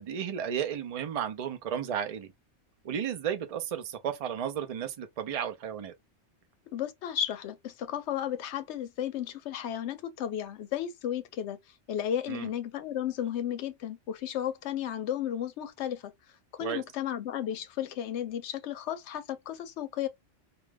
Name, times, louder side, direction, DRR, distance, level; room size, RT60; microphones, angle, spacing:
voice 1, 0.0-2.3 2.8-5.9 12.3-12.5 16.6-16.8, right 8 dB, 50° right, 0.4 m, -33 dB
voice 2, 6.7-11.6 11.9-16.1 16.6-20.1, left 10 dB, 75° left, 0.8 m, -34 dB
2.5 x 2.2 x 3.3 m
omnidirectional pair, 1.2 m